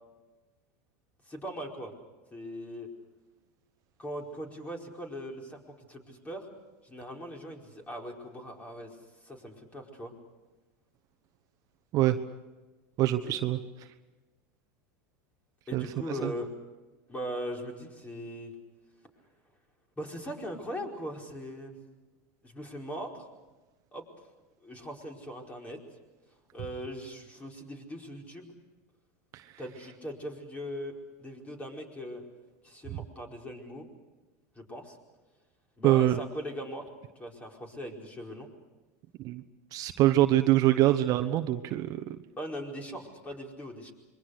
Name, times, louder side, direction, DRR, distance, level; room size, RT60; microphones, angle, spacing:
voice 1, 1.3-1.9 2.3-2.9 4.0-5.6 5.9-6.4 6.8-9.0 9.2-10.1 13.2-13.3 15.7-16.5 17.1-18.5 20.0-21.8 22.4-23.3 23.9-24.0 24.6-25.8 26.5-28.5 29.6-30.9 31.2-32.2 32.6-33.8 34.6-35.0 35.8-36.9 37.2-38.5 42.4-43.9, equal, 15° left, 2 dB, 4.8 m, -40 dB
voice 2, 13.0-13.6 15.7-15.9 16.2-16.3 29.3-29.5 35.8-36.2 39.2-39.4 39.7-42.2, right 14 dB, 45° right, 7 dB, 1.1 m, -24 dB
26.5 x 23.0 x 6.6 m, 1.2 s
supercardioid pair, 120°, 8 cm